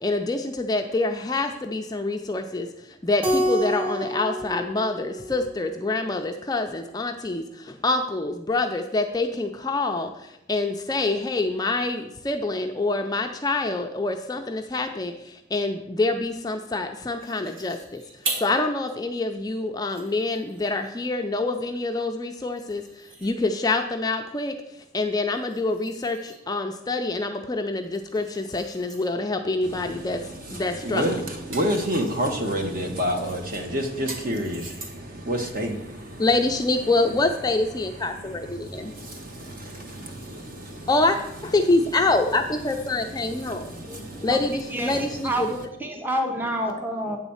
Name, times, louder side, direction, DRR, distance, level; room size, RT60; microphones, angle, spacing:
voice 1, 0.0-18.0 18.3-24.5 24.9-31.1 36.2-38.9 40.9-43.7 44.2-45.6, left 2 dB, 20° left, 5 dB, 0.4 m, -26 dB
Keyboard (musical), 3.2-5.9, equal, 30° right, 1.2 m, -28 dB
sound 1, 17.2-18.6 19.1-19.2 19.7-21.0 22.5-23.7 25.3-26.5 27.7-29.1 30.5-30.8 31.1-32.4 33.2-35.2, right 3 dB, 80° right, 1.6 m, -40 dB
voice 2, 29.6-36.2 38.2-40.9 42.9-44.3 44.9-45.0, equal, 45° right, 3 dB, 1.2 m, -30 dB
voice 3, 43.9-44.4 44.7-44.9 45.2-45.4 45.8-47.2, right 1 dB, 10° right, 3 dB, 0.7 m, -28 dB
8.8 x 4.1 x 7.1 m, 0.84 s
head